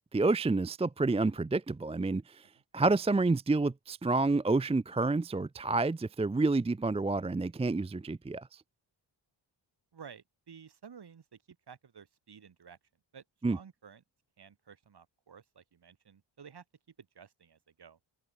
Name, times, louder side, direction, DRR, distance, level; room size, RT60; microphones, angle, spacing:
voice 1, 0.1-2.4 2.7-8.6 13.4-13.6, right 3 dB, 15° right, 0.5 m, -29 dB
voice 2, 9.9-12.8 13.1-14.0 14.4-16.6 17.0-18.0, right 7 dB, 50° right, 6.2 m, -53 dB
open air
wide cardioid pair, 130°, 49 cm